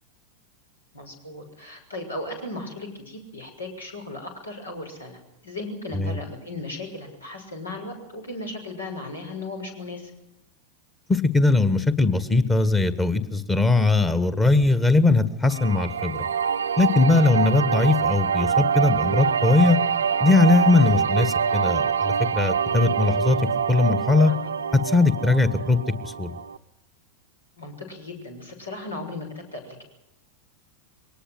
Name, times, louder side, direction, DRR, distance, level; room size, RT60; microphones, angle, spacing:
voice 1, 0.9-10.1 17.0-17.3 27.6-29.3 29.5-29.8, left 2 dB, 75° left, 3 dB, 6.4 m, -36 dB
voice 2, 11.1-16.2 16.8-19.8 20.2-23.4 23.7-24.3 24.7-26.3, left 3 dB, 10° left, 13 dB, 1.7 m, -20 dB
sound 1, 15.5-26.6, right 7 dB, 70° right, 0.8 m, -25 dB
23.0 x 19.0 x 7.8 m, 0.90 s
figure-of-eight pair, 90°, 0 cm